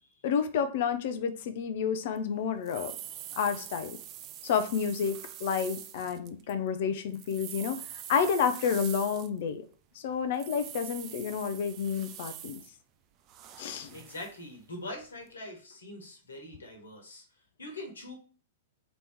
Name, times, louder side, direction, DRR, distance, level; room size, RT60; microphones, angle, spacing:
voice 1, 0.2-2.9 3.4-4.0 4.4-7.8 8.1-9.6 10.0-12.6 13.6-13.9, left 7 dB, 55° left, 10 dB, 0.5 m, -30 dB
sound 1, 2.2-2.3 2.7-6.6 7.0-9.5 10.3-12.7 13.3-14.4 15.0-15.1, right 11 dB, 35° right, 0.4 m, -44 dB
voice 2, 13.9-17.2 17.6-18.2, left 1 dB, 75° left, 2 dB, 1.4 m, -43 dB
4.0 x 3.0 x 3.5 m, 0.40 s
figure-of-eight pair, 105°, 0 cm